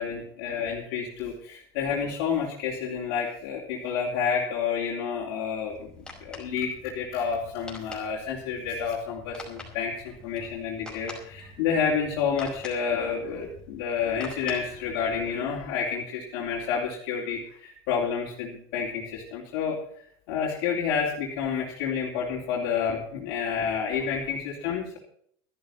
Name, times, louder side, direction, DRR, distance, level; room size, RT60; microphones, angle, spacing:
voice 1, 0.0-5.9 6.2-19.8 20.3-25.0, left 6 dB, 70° left, -4 dB, 3.6 m, -29 dB
sound 1, 5.7-15.3, left 2 dB, 5° left, 5.2 m, -46 dB
13.5 x 11.0 x 5.9 m, 0.63 s
supercardioid pair, 115°, 13 cm